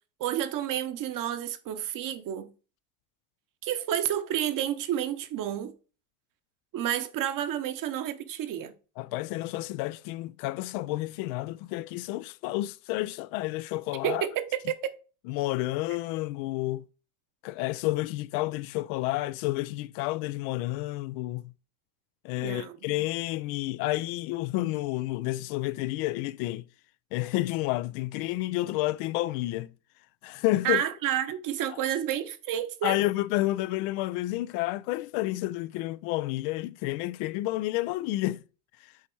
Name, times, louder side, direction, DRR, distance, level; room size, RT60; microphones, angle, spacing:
voice 1, 0.2-2.5 3.6-5.7 6.7-8.7 14.0-14.9 22.4-22.8 30.6-33.0, right 10 dB, 45° right, 1.0 m, -30 dB
voice 2, 9.0-14.3 15.3-16.8 17.4-21.5 22.2-26.6 27.1-29.7 30.2-30.8 31.7-31.8 32.8-38.4 38.8-38.9, left 17 dB, 65° left, 0.5 m, -30 dB
7.4 x 4.2 x 4.5 m
supercardioid pair, 95°, 43 cm